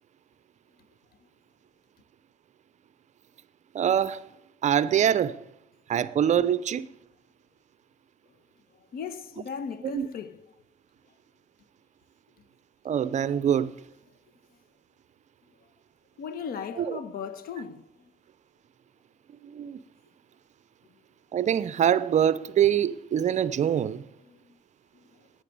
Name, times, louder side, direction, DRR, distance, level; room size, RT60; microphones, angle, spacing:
voice 1, 3.7-4.2 4.6-5.4 5.9-6.9 9.8-10.1 12.8-13.8 16.8-17.0 19.4-19.8 21.3-24.0, right 9 dB, 45° right, 0.7 m, -24 dB
voice 2, 8.9-10.5 16.2-18.1 24.2-24.6 24.9-25.2, left 6 dB, 60° left, 1.3 m, -38 dB
12.5 x 9.4 x 8.5 m
cardioid pair, 110°, 17 cm